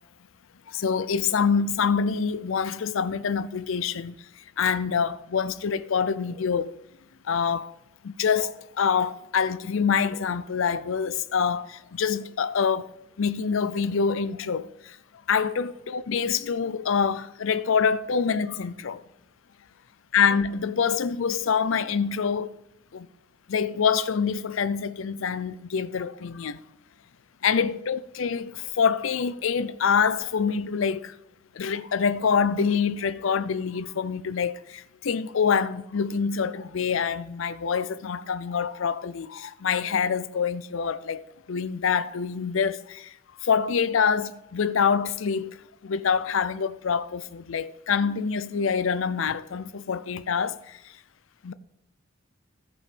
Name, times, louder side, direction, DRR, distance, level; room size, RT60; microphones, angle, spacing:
voice 1, 0.7-6.8 7.2-7.7 8.0-15.0 15.3-19.0 20.1-22.5 22.9-23.1 23.5-26.6 27.4-31.1 31.5-41.2 41.5-43.1 43.4-45.6 45.8-50.9 51.4-51.5, left 6 dB, 75° left, 0.5 m, -26 dB
15.0 x 5.4 x 5.1 m
head